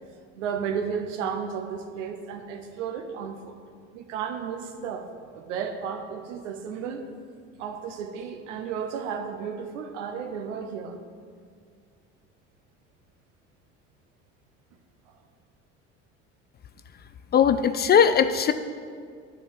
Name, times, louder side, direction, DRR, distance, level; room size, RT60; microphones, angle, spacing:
voice 1, 0.3-3.6 3.9-5.1 5.3-7.0 7.6-11.0, right 7 dB, 75° right, 7 dB, 0.9 m, -33 dB
voice 2, 17.3-18.5, left 7 dB, 30° left, 10 dB, 0.4 m, -19 dB
10.5 x 3.9 x 7.3 m, 2.1 s
hypercardioid pair, 65°, 38 cm